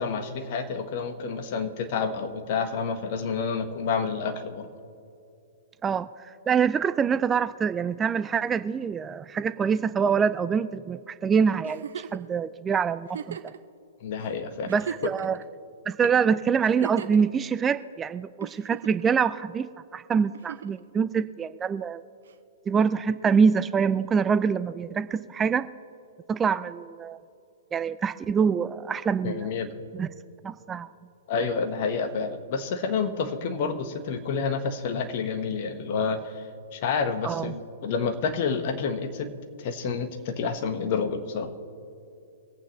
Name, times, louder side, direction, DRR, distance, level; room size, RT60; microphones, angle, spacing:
voice 1, 0.0-4.7 14.0-14.7 29.2-29.7 31.3-36.3 36.7-39.3 39.6-41.5, left 5 dB, 50° left, 7 dB, 1.4 m, -29 dB
voice 2, 5.8-13.5 14.7-15.4 15.9-22.0 22.7-25.7 26.3-27.2 27.7-29.5 29.9-30.1 30.4-30.9 37.2-37.5, right 6 dB, 15° right, 14 dB, 0.4 m, -25 dB
Giggle, 11.6-12.2 13.1-13.6 14.2-14.3 14.7-15.4 16.6-17.2 18.4-19.1 20.3-20.8 22.3-22.4, right 8 dB, 65° right, 0.7 m, -36 dB
24.5 x 8.6 x 3.2 m, 2.7 s
figure-of-eight pair, 115°, 0 cm